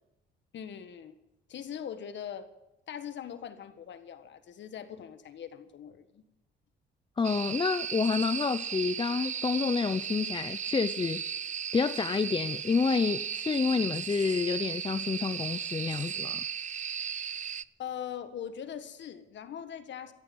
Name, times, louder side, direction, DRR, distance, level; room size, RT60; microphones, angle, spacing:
voice 1, 0.5-1.2 1.5-2.5 2.9-6.2 17.3-17.5 17.8-20.1, left 9 dB, 65° left, 10 dB, 1.6 m, -41 dB
voice 2, 7.2-11.5 11.7-16.4, left 5 dB, 25° left, 12 dB, 0.5 m, -29 dB
sound 1, 7.2-17.6, right 8 dB, 40° right, 0.5 m, -36 dB
17.5 x 13.5 x 5.4 m, 0.97 s
cardioid pair, 90°, 20 cm